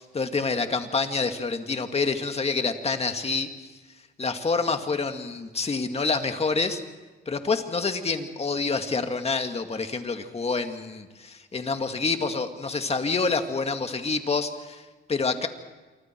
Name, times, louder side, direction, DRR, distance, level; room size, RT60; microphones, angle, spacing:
voice 1, 0.0-3.5 4.2-6.8 7.3-15.5, left 4 dB, 30° left, 6 dB, 2.1 m, -27 dB
27.5 x 24.5 x 4.6 m, 1.3 s
cardioid pair, 90°, 20 cm